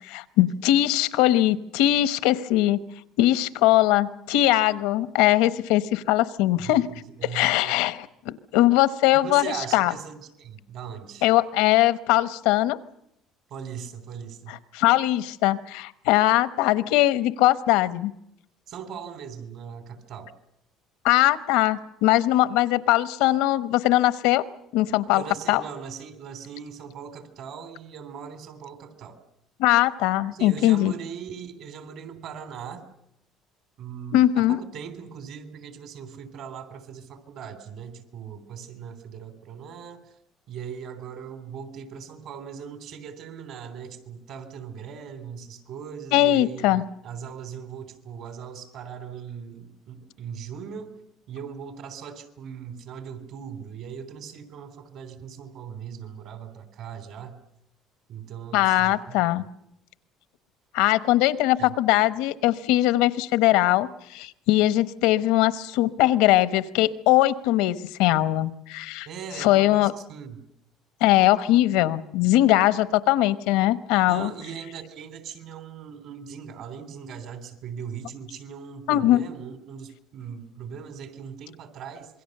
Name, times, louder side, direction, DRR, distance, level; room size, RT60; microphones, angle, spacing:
voice 1, 0.0-2.8 3.2-6.9 7.3-9.9 11.2-12.8 14.5-18.1 21.0-24.4 24.7-25.2 25.5-25.6 29.6-30.9 34.1-34.6 46.1-46.8 58.5-59.4 60.7-69.1 69.4-69.9 71.0-74.3 78.9-79.2, left 15 dB, 90° left, 14 dB, 1.0 m, -21 dB
voice 2, 6.7-7.8 9.1-11.3 13.5-14.5 18.7-20.3 25.1-29.2 30.3-32.9 33.8-40.1 40.5-50.9 51.3-57.4 58.1-59.5 61.6-61.7 69.1-70.4 74.1-82.2, right 7 dB, 65° right, 9 dB, 3.5 m, -39 dB
27.0 x 22.0 x 6.7 m, 0.78 s
cardioid pair, 120°, 0 cm